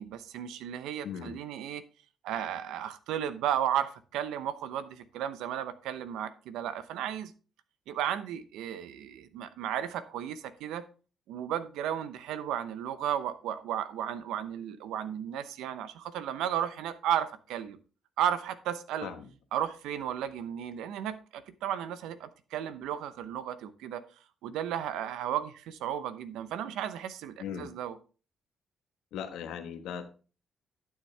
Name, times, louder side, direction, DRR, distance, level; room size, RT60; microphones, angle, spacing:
voice 1, 0.0-1.8 2.2-7.3 7.9-10.8 11.3-17.8 18.2-19.1 19.5-24.0 24.4-28.0, right 10 dB, 90° right, 13 dB, 0.8 m, -34 dB
voice 2, 1.0-1.4 19.0-19.3 27.4-27.7 29.1-30.1, left 8 dB, 85° left, 7 dB, 1.3 m, -38 dB
11.5 x 6.6 x 3.3 m, 0.36 s
cardioid pair, 90°, 0 cm